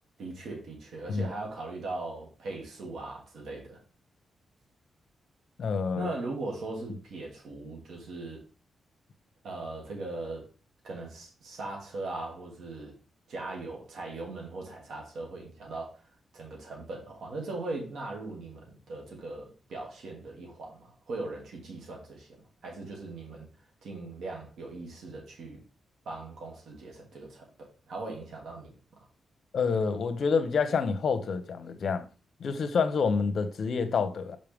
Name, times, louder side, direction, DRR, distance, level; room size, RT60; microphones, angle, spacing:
voice 1, 0.2-3.8 5.9-8.4 9.4-10.5 10.8-13.0 13.3-16.0 16.3-22.3 22.6-23.5 23.8-25.6 26.0-28.7, right 2 dB, 75° right, 2.7 m, -39 dB
voice 2, 5.6-6.1 29.5-32.1 32.4-34.4, left 5 dB, 60° left, 1.0 m, -28 dB
6.5 x 5.3 x 3.6 m
cardioid pair, 75°, 0 cm